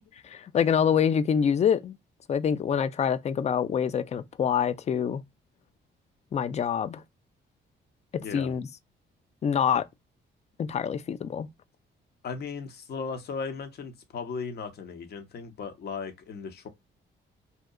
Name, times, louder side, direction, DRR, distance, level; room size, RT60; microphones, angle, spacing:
voice 1, 0.3-2.0 2.3-5.2 6.3-7.0 8.3-8.7 9.4-9.8 10.6-11.5, left 7 dB, 35° left, 0.3 m, -25 dB
voice 2, 12.2-16.7, left 5 dB, 55° left, 0.7 m, -36 dB
2.7 x 2.2 x 2.2 m
cardioid pair, 90°, 20 cm